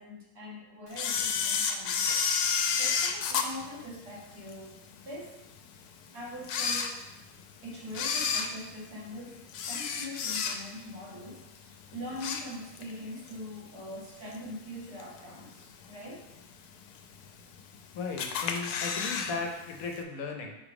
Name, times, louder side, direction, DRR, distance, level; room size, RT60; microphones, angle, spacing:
voice 1, 0.0-5.3 6.1-7.0 7.6-16.2, left 1 dB, 90° right, -5 dB, 2.1 m, -43 dB
Camera, 0.9-4.5 5.0-5.1 5.8-5.9 6.4-7.4 7.9-10.9 11.2-11.5 11.9-12.9 13.3-13.4 14.3-14.4 15.0-15.4 15.8-15.9 16.1-16.2 16.4-16.5 17.2-17.8 18.2-19.3 19.6-19.7 20.0-20.1, left 6 dB, 85° left, 1.1 m, -30 dB
voice 2, 17.9-20.6, left 4 dB, 70° left, 3 dB, 1.2 m, -36 dB
5.6 x 3.5 x 4.8 m, 0.96 s
omnidirectional pair, 1.6 m